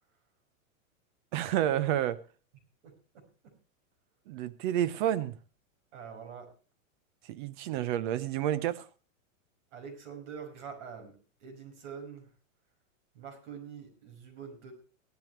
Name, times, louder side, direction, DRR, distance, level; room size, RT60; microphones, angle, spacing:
voice 1, 1.3-2.2 4.3-5.3 7.3-8.9, right 11 dB, 35° right, 0.8 m, -30 dB
voice 2, 2.8-3.5 5.9-6.5 9.7-12.3 13.1-14.7, right 6 dB, 55° right, 5.6 m, -45 dB
17.5 x 12.5 x 3.2 m
supercardioid pair, 165°, 41 cm